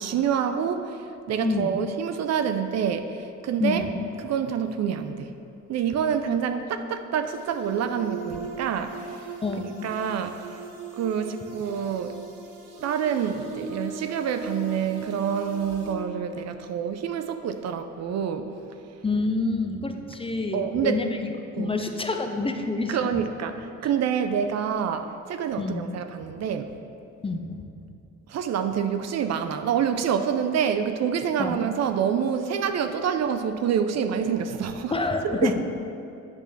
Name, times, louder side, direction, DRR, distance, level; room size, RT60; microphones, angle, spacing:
voice 1, 0.0-3.9 4.2-5.3 5.7-9.3 9.8-10.6 10.9-12.2 12.8-18.5 20.5-21.0 21.5-21.8 22.9-26.7 28.3-35.0 35.2-35.6, right 7 dB, 60° right, 8 dB, 0.5 m, -27 dB
voice 2, 1.4-1.8 3.6-3.9 9.4-9.8 19.0-21.2 21.5-23.2 25.6-25.9 27.2-27.6 31.4-31.6 34.9-35.6, left 3 dB, 20° left, 5 dB, 0.5 m, -27 dB
sound 1, 7.3-15.9, right 4 dB, 90° right, 0.9 m, -39 dB
8.4 x 3.4 x 6.1 m, 2.6 s
cardioid pair, 90°, 30 cm